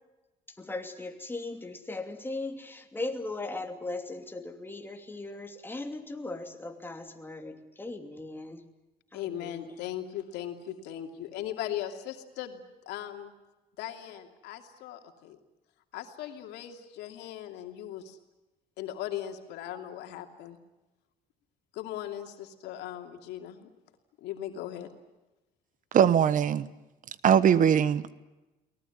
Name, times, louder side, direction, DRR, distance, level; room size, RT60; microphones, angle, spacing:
voice 1, 0.5-8.7 9.1-9.8, left 2 dB, 10° left, 2.8 m, -38 dB
voice 2, 9.1-13.3 13.8-15.4 15.9-18.2 18.8-20.6 21.7-23.7 24.2-24.9, left 11 dB, 85° left, 2.7 m, -38 dB
voice 3, 25.9-26.7 27.2-28.1, right 8 dB, 50° right, 1.1 m, -21 dB
23.5 x 19.5 x 9.4 m
cardioid pair, 110°, 17 cm